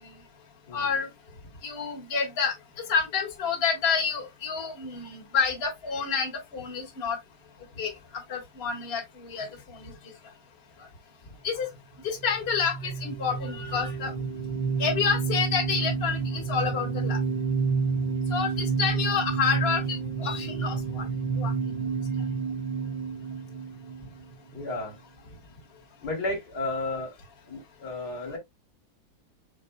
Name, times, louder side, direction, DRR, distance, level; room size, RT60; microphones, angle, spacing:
voice 1, 0.7-1.1 1.6-2.5 2.9-7.2 7.8-7.9 8.3-9.9 10.8-10.9 11.4-11.7 12.0-14.1 14.8-17.2 18.3-21.0 21.4-21.8, left 6 dB, 35° left, 1.6 m, -29 dB
sound 1, 12.2-24.6, right 5 dB, 75° right, 1.8 m, -30 dB
voice 2, 24.5-25.0 26.0-27.2 27.5-28.4, left 2 dB, 60° left, 2.1 m, -33 dB
5.3 x 4.1 x 2.2 m
omnidirectional pair, 2.0 m